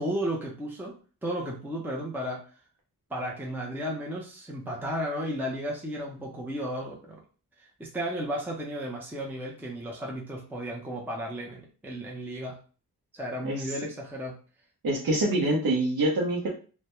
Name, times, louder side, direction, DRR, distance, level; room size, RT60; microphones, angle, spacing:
voice 1, 0.0-2.5 3.1-7.2 7.6-12.6 13.1-14.4 15.1-15.2, equal, 5° right, -2 dB, 0.5 m, -34 dB
voice 2, 14.8-16.5, right 1 dB, 65° right, -2 dB, 0.7 m, -25 dB
2.2 x 2.1 x 2.9 m, 0.38 s
cardioid pair, 60°, 39 cm